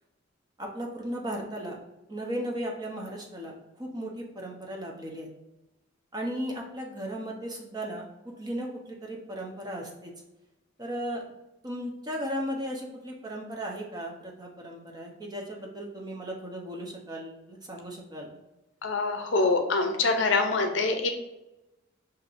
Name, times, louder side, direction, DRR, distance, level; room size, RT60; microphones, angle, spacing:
voice 1, 0.6-1.8 2.1-5.3 6.1-8.1 8.4-10.1 10.8-11.2 11.6-18.4, equal, 20° right, -1 dB, 0.6 m, -36 dB
voice 2, 18.8-21.1, left 3 dB, 65° left, 5 dB, 0.5 m, -25 dB
6.4 x 2.8 x 2.5 m, 0.98 s
head